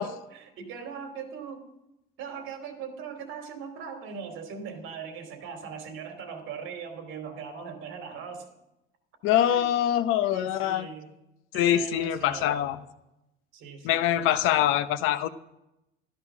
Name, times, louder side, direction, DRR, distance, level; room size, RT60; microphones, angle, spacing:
voice 1, 0.0-1.7 2.2-8.5 9.5-9.6 10.3-11.1 11.5-12.7 13.5-14.8, right 6 dB, 70° right, 5 dB, 3.0 m, -40 dB
voice 2, 9.2-10.9 11.5-12.8 13.8-15.3, left 11 dB, 85° left, 12 dB, 0.9 m, -24 dB
14.0 x 13.0 x 6.1 m, 0.91 s
cardioid pair, 165°, 21 cm